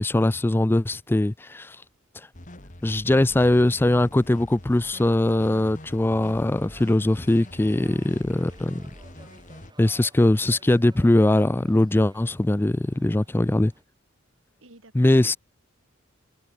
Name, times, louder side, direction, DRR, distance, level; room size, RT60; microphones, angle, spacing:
voice 1, 0.0-1.8 2.8-8.9 9.8-13.7 14.9-15.4, left 1 dB, 10° left, 0.3 m, -21 dB
sound 1, 2.3-9.7, left 1 dB, 40° left, 3.0 m, -44 dB
sound 2, 4.5-13.8, right 2 dB, 20° right, 5.7 m, -55 dB
voice 2, 7.8-8.6 12.9-13.3 14.6-15.3, right 2 dB, 80° right, 4.1 m, -55 dB
head